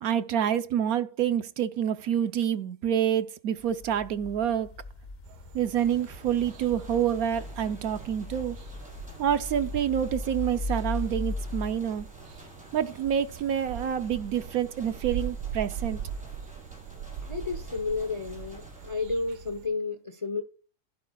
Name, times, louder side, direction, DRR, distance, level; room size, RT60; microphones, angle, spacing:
voice 1, 0.0-4.7 5.5-8.6 9.2-12.1 12.7-16.0, right 9 dB, 70° right, 1.1 m, -27 dB
sound 1, 3.6-11.8, left 2 dB, 70° left, 0.4 m, -38 dB
sound 2, 5.2-19.7, right 8 dB, 90° right, 1.3 m, -42 dB
sound 3, 5.7-18.9, equal, 5° right, 5.9 m, -51 dB
voice 2, 17.2-20.4, left 4 dB, 30° left, 0.6 m, -32 dB
15.5 x 11.5 x 2.3 m
omnidirectional pair, 1.7 m